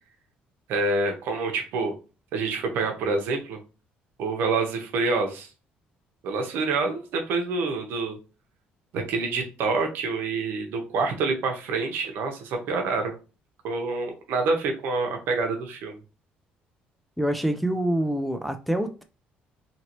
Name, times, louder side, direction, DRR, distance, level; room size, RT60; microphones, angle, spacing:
voice 1, 0.7-1.9 2.3-3.6 4.2-5.5 6.2-8.2 8.9-13.1 13.6-16.0, right 3 dB, 75° right, 0.8 m, -27 dB
voice 2, 17.2-19.0, right 1 dB, ahead, 0.3 m, -26 dB
2.9 x 2.8 x 2.9 m
cardioid pair, 125°, 4 cm